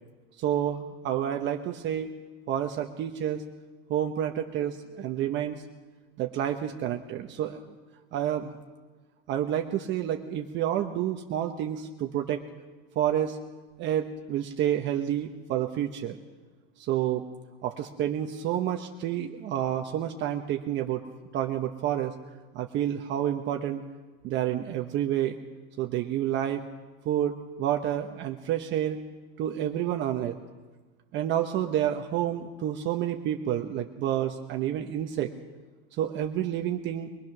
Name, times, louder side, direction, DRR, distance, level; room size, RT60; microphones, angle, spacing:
voice 1, 0.4-2.2 2.5-3.4 3.9-5.6 6.2-7.6 8.1-8.6 9.3-12.4 12.9-13.4 13.8-16.2 16.8-17.3 17.6-21.0 21.3-22.1 22.5-23.8 24.2-25.4 25.8-26.6 27.0-29.0 29.4-30.4 31.1-35.3 36.0-37.1, right 11 dB, 35° right, 4 dB, 1.0 m, -29 dB
22.5 x 20.0 x 6.1 m, 1.3 s
supercardioid pair, 150°, 32 cm